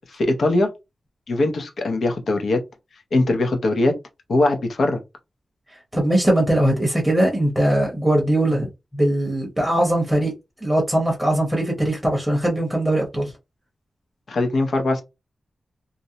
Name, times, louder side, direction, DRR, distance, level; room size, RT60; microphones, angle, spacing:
voice 1, 0.1-0.7 1.3-2.6 3.1-3.9 4.3-5.0 14.3-15.0, left 2 dB, 70° left, 0.6 m, -21 dB
voice 2, 5.9-10.3 10.6-13.3, right 1 dB, ahead, 0.8 m, -20 dB
2.5 x 2.0 x 2.7 m
wide cardioid pair, 160°, 0 cm